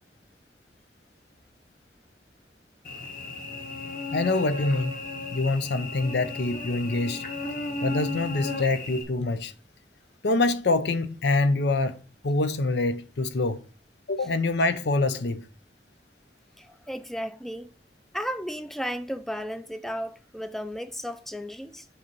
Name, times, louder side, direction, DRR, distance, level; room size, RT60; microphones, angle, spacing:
Cricket / Buzz, 2.8-9.0, left 3 dB, 50° left, 1.5 m, -35 dB
voice 1, 4.1-5.0 5.3-7.2 7.8-9.5 10.2-13.6 14.1-15.4, left 2 dB, 80° left, 0.6 m, -25 dB
voice 2, 16.6-17.7 18.1-21.9, equal, ahead, 0.4 m, -34 dB
7.8 x 2.9 x 6.0 m
head